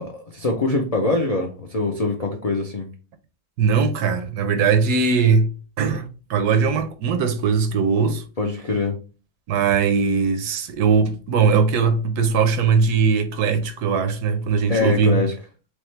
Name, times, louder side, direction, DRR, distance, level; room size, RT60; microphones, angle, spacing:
voice 1, 0.0-2.9 8.4-9.0 14.7-15.3, left 3 dB, 80° left, 0.3 m, -23 dB
voice 2, 3.6-5.5 5.8-8.2 9.5-15.2, right 5 dB, 90° right, 1.2 m, -20 dB
3.6 x 3.2 x 3.2 m
omnidirectional pair, 1.6 m